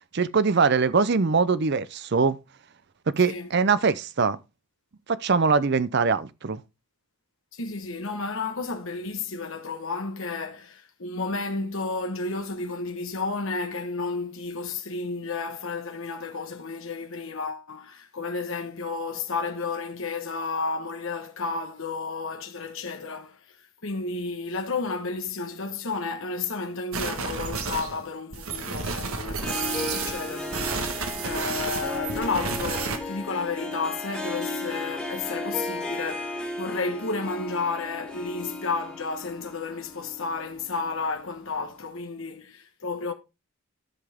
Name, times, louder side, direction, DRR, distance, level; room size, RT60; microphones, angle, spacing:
voice 1, 0.1-2.4 3.2-4.4 5.1-6.6, right 5 dB, 50° right, 0.5 m, -22 dB
voice 2, 7.5-23.4 23.8-43.1, left 4 dB, 65° left, 1.2 m, -32 dB
sound 1, 26.9-28.1 28.3-33.0, right 5 dB, 70° right, 1.4 m, -31 dB
Harp, 29.3-41.2, left 2 dB, 5° left, 1.6 m, -35 dB
13.0 x 5.6 x 3.5 m
head